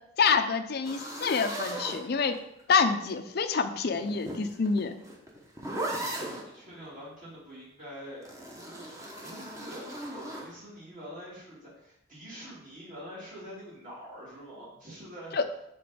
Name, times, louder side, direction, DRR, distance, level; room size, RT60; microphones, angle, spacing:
voice 1, 0.2-2.4 2.7-4.9 15.3-15.5, left 5 dB, 55° left, 8 dB, 0.5 m, -27 dB
sound 1, 0.8-2.6 3.8-6.5 8.2-10.5, right 1 dB, 15° right, 1.0 m, -37 dB
voice 2, 6.2-8.3 8.8-9.9 10.1-15.3, equal, 45° right, -8 dB, 2.9 m, -45 dB
6.9 x 3.8 x 5.0 m, 0.83 s
head